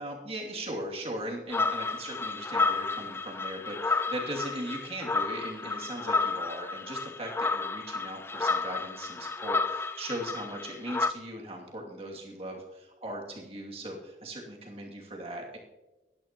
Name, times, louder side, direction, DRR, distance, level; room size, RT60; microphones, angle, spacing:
voice 1, 0.0-15.6, right 1 dB, 35° right, -1 dB, 2.6 m, -39 dB
sound 1, 1.5-11.1, left 3 dB, 15° left, 0.3 m, -31 dB
21.0 x 10.5 x 3.0 m, 1.1 s
head